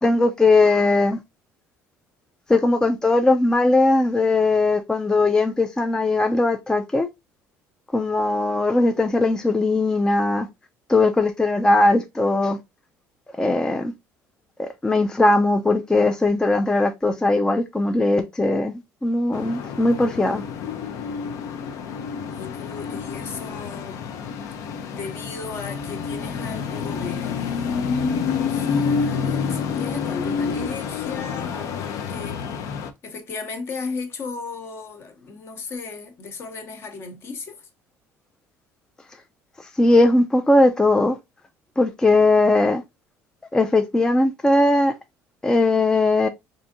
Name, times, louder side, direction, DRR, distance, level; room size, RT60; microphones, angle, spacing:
voice 1, 0.0-1.2 2.5-7.1 7.9-10.5 10.9-12.6 13.4-13.9 14.6-20.4 39.6-41.2 41.8-42.8 43.5-44.9 45.4-46.3, left 2 dB, 10° left, 0.3 m, -19 dB
sound 1, 19.3-32.9, left 6 dB, 65° left, 0.5 m, -28 dB
voice 2, 21.8-24.0 24.9-27.9 28.3-32.7 33.0-37.7, left 4 dB, 45° left, 0.9 m, -36 dB
4.7 x 2.6 x 2.6 m
cardioid pair, 130°, 6 cm